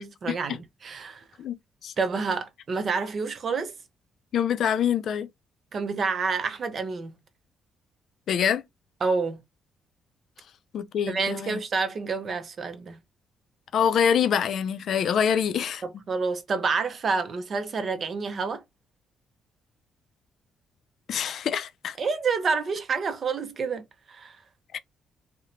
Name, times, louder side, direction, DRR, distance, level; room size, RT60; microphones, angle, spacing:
voice 1, 0.0-1.2 2.0-3.7 5.7-7.2 9.0-9.4 11.1-13.0 15.8-18.6 22.0-24.4, right 4 dB, 50° right, 0.5 m, -28 dB
voice 2, 4.3-5.3 8.3-8.6 10.7-11.6 13.7-15.8 21.1-22.0 24.7-24.8, left 8 dB, 65° left, 0.3 m, -25 dB
2.8 x 2.1 x 2.5 m
cardioid pair, 90°, 0 cm